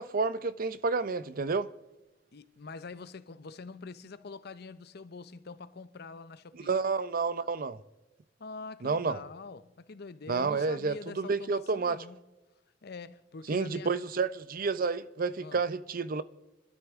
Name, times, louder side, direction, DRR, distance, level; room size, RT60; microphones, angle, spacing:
voice 1, 0.0-1.7 6.5-7.8 8.8-9.2 10.3-12.0 13.5-16.2, right 4 dB, 50° right, 0.6 m, -30 dB
voice 2, 2.3-6.7 8.4-12.2 12.8-13.9 15.4-15.6, left 4 dB, 60° left, 0.6 m, -45 dB
29.0 x 12.5 x 3.6 m
head